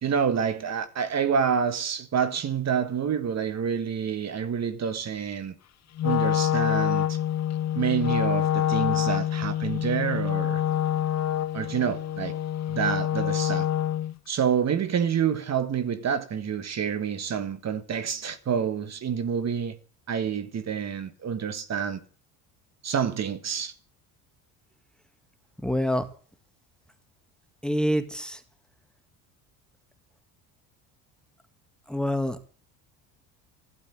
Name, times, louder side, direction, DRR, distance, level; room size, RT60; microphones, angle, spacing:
voice 1, 0.0-5.6 6.0-7.2 7.7-10.6 11.5-12.3 12.7-13.7 14.3-19.8 20.1-22.0 22.8-23.7, right 7 dB, 40° right, 1.6 m, -28 dB
Wind instrument woodwind instrument, 6.0-14.2, left 11 dB, 40° left, 0.8 m, -26 dB
voice 2, 25.6-26.1 27.6-28.4 31.9-32.6, equal, ahead, 1.6 m, -26 dB
12.0 x 10.5 x 8.5 m
supercardioid pair, 85°, 41 cm